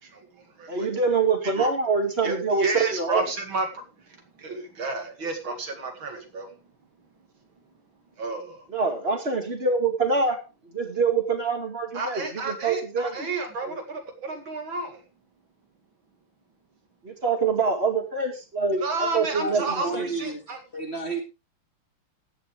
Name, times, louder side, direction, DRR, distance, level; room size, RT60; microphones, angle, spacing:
voice 1, 0.0-0.9 1.4-1.7 2.2-6.5 8.2-8.7 11.9-15.0 18.8-20.6, right 3 dB, 65° right, 2.9 m, -32 dB
voice 2, 0.7-3.2 8.7-10.4 10.6-13.3 17.0-20.0, right 4 dB, 30° right, 2.3 m, -25 dB
voice 3, 19.4-21.2, right 3 dB, 30° left, 2.2 m, -32 dB
14.5 x 10.5 x 3.4 m
omnidirectional pair, 2.4 m